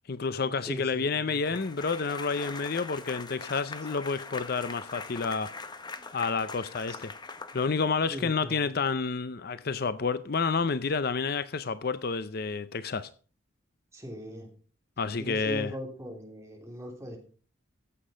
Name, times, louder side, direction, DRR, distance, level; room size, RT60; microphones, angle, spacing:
voice 1, 0.1-5.5 6.1-7.1 7.5-13.1 15.0-15.7, left 4 dB, 50° left, 0.6 m, -29 dB
voice 2, 0.7-1.4 6.9-7.0 8.1-8.6 13.9-14.5 15.2-17.2, equal, 15° right, 3.2 m, -39 dB
sound 1, 1.4-8.2, left 4 dB, 20° left, 0.8 m, -42 dB
15.0 x 7.6 x 5.0 m
head